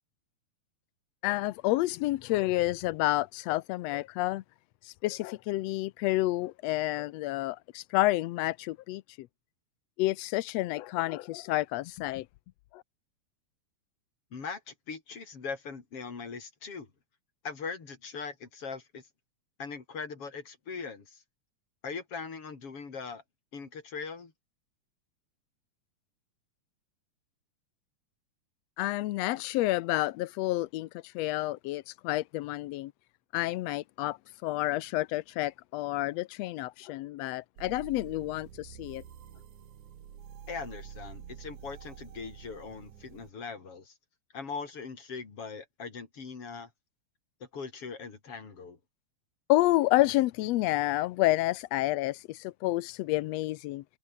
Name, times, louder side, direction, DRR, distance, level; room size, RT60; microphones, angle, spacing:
voice 1, 1.2-4.4 4.8-9.3 10.0-12.3 12.7-12.8 28.8-32.9 33.3-39.0 49.5-53.8, left 17 dB, 75° left, 1.7 m, -29 dB
voice 2, 14.3-16.9 17.4-19.0 19.6-21.2 21.8-23.2 23.5-24.3 40.5-43.9 44.3-46.7 47.5-48.8, left 5 dB, 50° left, 4.6 m, -40 dB
sound 1, 37.6-43.3, right 9 dB, 85° right, 3.5 m, -48 dB
omnidirectional pair, 3.3 m